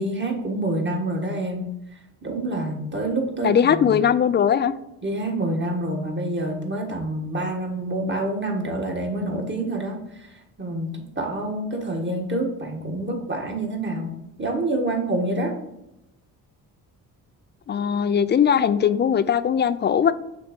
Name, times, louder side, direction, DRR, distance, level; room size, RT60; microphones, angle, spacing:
voice 1, 0.0-1.6 2.2-4.0 5.0-14.1 14.4-15.5, right 1 dB, 30° right, 2 dB, 1.6 m, -27 dB
voice 2, 3.4-4.7 17.7-20.1, left 8 dB, 30° left, 14 dB, 0.3 m, -20 dB
6.6 x 3.0 x 5.1 m, 0.87 s
cardioid pair, 80°, 39 cm